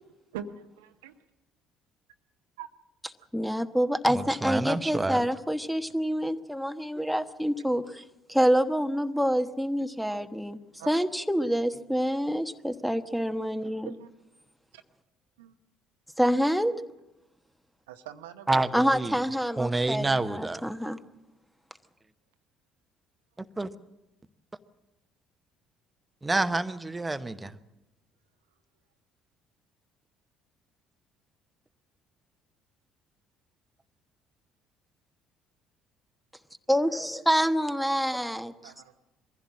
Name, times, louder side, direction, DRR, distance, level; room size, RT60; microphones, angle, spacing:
voice 1, 0.3-1.2 2.6-2.7 10.8-10.9 13.8-14.1 14.7-14.8 15.4-15.5 17.9-18.8 38.6-38.9, right 9 dB, 75° right, 9 dB, 0.9 m, -43 dB
voice 2, 3.3-8.0 8.3-10.6 10.9-13.9 16.2-16.7 18.7-21.0 36.7-38.7, equal, ahead, 10 dB, 1.1 m, -27 dB
voice 3, 4.1-5.3 18.5-19.1 19.6-20.7 23.4-23.7 26.2-27.6, right 2 dB, 15° right, 10 dB, 1.0 m, -28 dB
22.5 x 15.5 x 7.5 m, 0.96 s
figure-of-eight pair, 55°, 0 cm